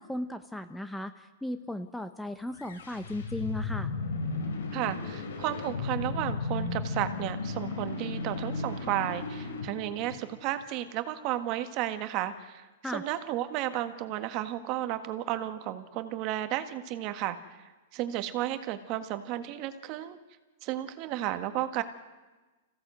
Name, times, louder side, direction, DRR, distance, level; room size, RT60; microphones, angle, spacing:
voice 1, 0.0-3.9 12.8-13.0, left 1 dB, 5° left, 9 dB, 0.8 m, -36 dB
sound 1, 2.5-10.6, left 3 dB, 85° left, 4.2 m, -35 dB
voice 2, 4.7-12.7 12.9-17.4 17.9-20.2 20.6-21.8, right 13 dB, 40° right, 9 dB, 1.6 m, -33 dB
26.0 x 16.5 x 7.9 m, 1.2 s
hypercardioid pair, 145°, 0 cm